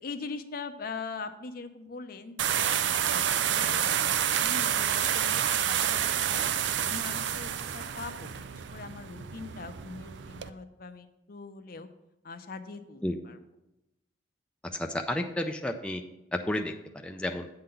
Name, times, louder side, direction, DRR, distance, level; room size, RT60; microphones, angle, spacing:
voice 1, 0.0-5.4 5.6-6.5 6.9-11.9 12.2-13.4, left 4 dB, 55° left, 9 dB, 0.6 m, -42 dB
sound 1, 2.4-10.5, right 9 dB, 75° right, 0.4 m, -29 dB
voice 2, 14.7-16.0 16.3-17.5, left 1 dB, 5° left, 4 dB, 0.3 m, -32 dB
8.7 x 3.8 x 6.8 m, 0.93 s
head